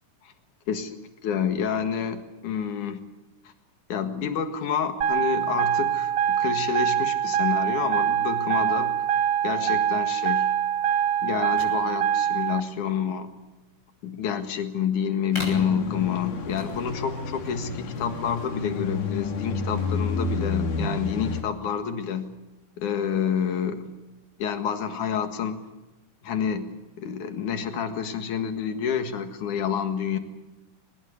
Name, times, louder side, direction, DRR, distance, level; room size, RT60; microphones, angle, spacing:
voice 1, 0.7-3.0 3.9-9.0 9.4-10.5 11.2-13.3 14.0-22.3 22.8-24.0 24.4-25.6 26.2-26.7 27.0-30.2, left 7 dB, 70° left, 7 dB, 3.2 m, -28 dB
sound 1, 5.0-12.6, right 9 dB, 75° right, 0.9 m, -24 dB
sound 2, 11.4-20.9, left 1 dB, 20° left, 6.2 m, -43 dB
sound 3, 15.3-21.4, left 4 dB, 90° left, 3.8 m, -30 dB
21.5 x 20.0 x 8.2 m, 1.1 s
omnidirectional pair, 3.7 m